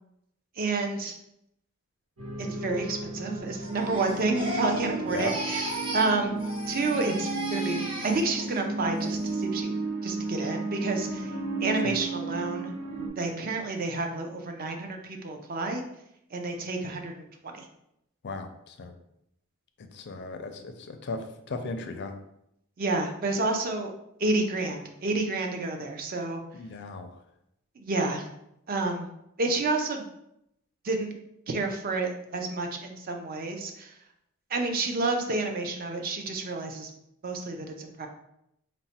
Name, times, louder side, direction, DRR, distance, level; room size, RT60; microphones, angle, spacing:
voice 1, 0.6-1.2 2.4-5.7 5.9-6.4 6.7-9.7 10.0-11.3 11.6-12.7 13.2-15.8 16.3-17.7 22.8-23.9 24.2-26.4 27.8-28.3 28.7-29.1 29.4-30.0 30.8-31.1 31.5-33.9 34.5-36.9 37.2-38.1, right 3 dB, 40° right, 3 dB, 0.5 m, -29 dB
sound 1, 2.2-13.1, right 3 dB, 85° right, 1.4 m, -33 dB
Crying sobbing, 3.6-6.1 6.4-8.6 9.0-9.4, right 1 dB, 25° right, 0.9 m, -36 dB
voice 2, 18.2-18.9 19.9-22.2 26.5-27.1, left 3 dB, 50° left, 7 dB, 0.4 m, -36 dB
4.0 x 2.1 x 4.2 m, 0.80 s
head